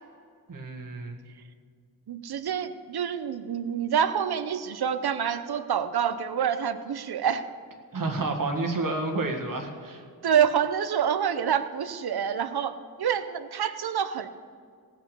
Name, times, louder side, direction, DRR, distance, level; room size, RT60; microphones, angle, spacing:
voice 1, 0.5-1.2 7.9-10.0, right 2 dB, 60° right, 2 dB, 1.7 m, -30 dB
voice 2, 2.1-7.4 10.2-14.3, right 8 dB, 75° right, 10 dB, 0.8 m, -27 dB
18.0 x 6.2 x 6.8 m, 2.1 s
wide cardioid pair, 100°, 38 cm